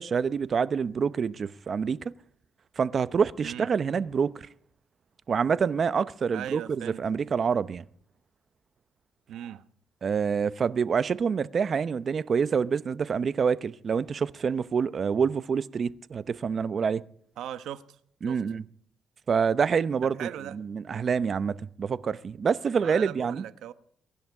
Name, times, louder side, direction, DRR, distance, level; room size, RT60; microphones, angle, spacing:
voice 1, 0.0-2.1 2.8-4.5 5.3-7.8 10.0-17.0 18.2-18.6 19.3-23.4, right 6 dB, 45° right, 0.7 m, -27 dB
voice 2, 6.3-7.0 9.3-9.6 17.4-17.8 18.3-18.4 20.2-20.6 22.8-23.7, right 11 dB, 80° right, 1.0 m, -38 dB
23.0 x 11.0 x 4.8 m
cardioid pair, 90°, 0 cm